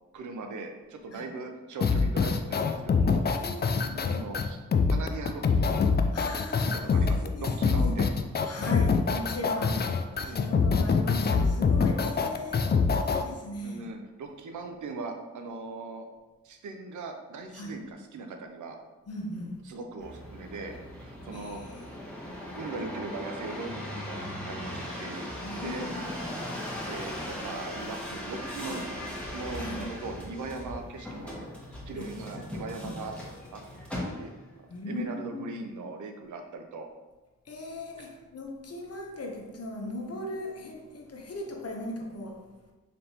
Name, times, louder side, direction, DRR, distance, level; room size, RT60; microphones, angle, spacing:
voice 1, 0.1-3.2 4.1-4.6 4.9-5.7 6.6-8.1 10.2-10.4 13.6-16.1 16.4-18.8 19.7-21.6 22.5-25.3 25.6-25.9 26.9-31.3 31.9-33.1 33.5-33.6 33.9-34.3 34.9-36.9 38.0-38.1, right 3 dB, 75° right, 4 dB, 0.6 m, -39 dB
sound 1, 1.8-13.2, left 5 dB, 35° left, 0.4 m, -25 dB
voice 2, 3.3-4.1 6.1-7.5 7.8-8.0 8.4-10.0 10.2-13.9 17.5-17.9 19.1-19.6 21.3-21.9 25.4-26.1 29.6-29.9 31.9-33.0 34.7-35.4 37.4-42.5, left 1 dB, 55° left, 1 dB, 0.9 m, -39 dB
sound 2, 20.0-34.5 35.1-35.7, left 1 dB, 5° left, 1.3 m, -38 dB
4.1 x 3.3 x 2.8 m, 1.1 s
supercardioid pair, 45°, 30 cm